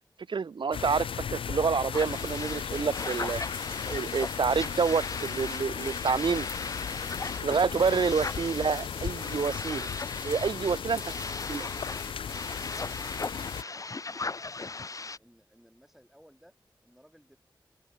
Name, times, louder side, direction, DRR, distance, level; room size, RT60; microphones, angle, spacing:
voice 1, 0.3-3.4 3.9-6.5 7.4-9.9 10.2-11.0 11.5-11.7, right 5 dB, 65° right, 0.6 m, -28 dB
sound 1, 0.7-13.6, left 7 dB, 85° left, 0.4 m, -36 dB
sound 2, 1.9-15.2, left 3 dB, 40° left, 0.6 m, -38 dB
sound 3, 7.1-13.2, left 4 dB, 65° left, 3.0 m, -54 dB
voice 2, 10.9-11.3 12.7-14.0 14.5-17.4, equal, 5° right, 5.9 m, -60 dB
cardioid pair, 55°, 9 cm